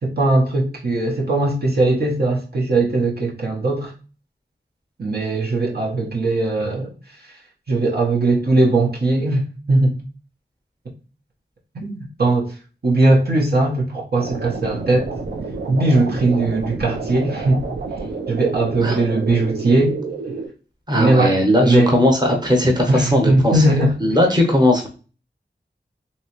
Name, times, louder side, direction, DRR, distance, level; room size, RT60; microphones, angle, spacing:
voice 1, 0.0-3.9 5.0-6.9 7.7-10.0 11.7-12.5 12.8-15.1 15.7-17.6 18.3-20.0 20.9-21.9 22.9-23.9, right 2 dB, 60° right, 0.9 m, -19 dB
sound 1, 14.2-20.5, right 4 dB, 85° right, 0.6 m, -29 dB
voice 2, 20.9-23.6 24.0-24.9, left 1 dB, 20° right, 1.0 m, -17 dB
3.0 x 2.9 x 2.9 m
wide cardioid pair, 45°, 18 cm